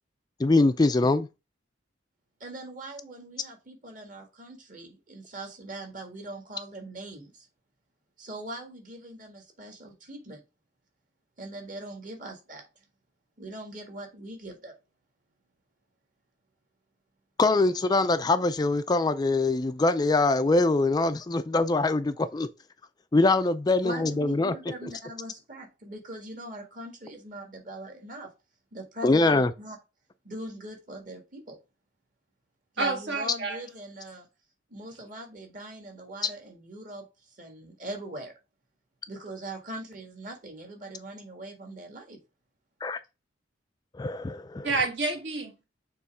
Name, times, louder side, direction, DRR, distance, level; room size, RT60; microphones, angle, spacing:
voice 1, 0.4-1.3 17.4-22.5 23.1-24.5 24.8-24.9 29.0-29.5 42.8-43.0 43.9-44.7, left 2 dB, 20° left, 0.3 m, -23 dB
voice 2, 2.4-7.5 8.2-10.4 11.4-12.7 13.4-14.8 23.8-28.3 28.7-29.8 30.2-31.6 32.7-34.3 34.7-38.3 39.1-42.2, right 1 dB, 45° right, 1.8 m, -41 dB
voice 3, 32.8-33.6 44.6-45.7, right 3 dB, 65° right, 1.8 m, -29 dB
6.8 x 3.0 x 4.8 m
head